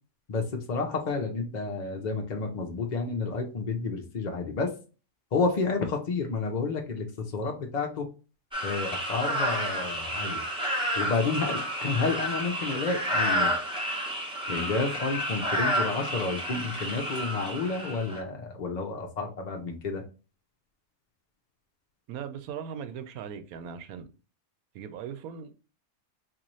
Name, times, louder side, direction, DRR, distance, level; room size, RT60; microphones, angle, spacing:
voice 1, 0.3-4.7 5.3-8.1 8.6-10.4 10.9-13.5 14.5-20.0, left 4 dB, 50° left, 0.5 m, -30 dB
sound 1, 8.5-18.2, equal, 5° right, 0.7 m, -30 dB
voice 2, 22.1-24.1 24.7-25.5, right 7 dB, 90° right, 1.1 m, -39 dB
4.0 x 2.6 x 3.0 m
omnidirectional pair, 1.5 m